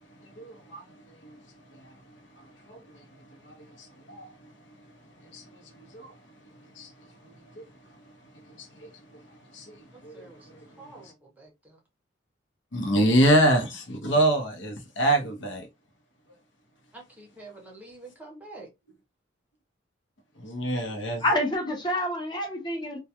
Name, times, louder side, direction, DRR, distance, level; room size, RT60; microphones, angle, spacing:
voice 1, 0.4-1.4 1.7-1.8 2.7-3.0 3.4-4.3 5.2-5.5 5.7-6.1 6.8-6.9 7.2-7.6 8.5-8.9 9.5-9.8 10.0-11.1 12.7-15.7 20.4-21.2, right 1 dB, 70° left, 0.7 m, -26 dB
voice 2, 10.1-10.5 10.8-11.8 16.9-18.7, right 2 dB, 10° right, 0.7 m, -47 dB
voice 3, 21.2-23.0, left 1 dB, 25° left, 0.7 m, -27 dB
2.2 x 2.2 x 2.7 m
head